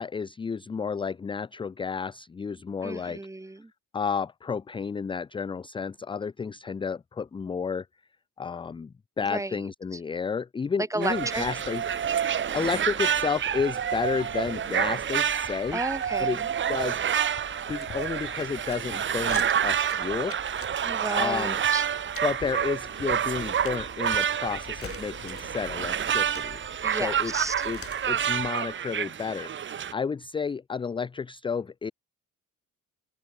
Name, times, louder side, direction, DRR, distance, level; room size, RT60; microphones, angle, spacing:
voice 1, 0.0-3.2 3.9-7.9 8.4-11.8 12.5-15.8 16.2-16.4 16.7-17.0 17.7-20.4 21.2-21.6 22.2-26.6 26.9-27.3 27.6-27.8 28.1-31.9, left 5 dB, 15° left, 0.4 m, -31 dB
voice 2, 2.8-3.7 9.3-9.7 10.9-11.6 15.7-16.5 20.8-21.9 26.8-27.5, right 2 dB, 10° right, 1.2 m, -33 dB
sound 1, 11.0-29.9, right 9 dB, 35° right, 0.8 m, -28 dB
sound 2, 11.3-28.5, left 7 dB, 45° left, 3.3 m, -46 dB
cardioid pair, 100°, 32 cm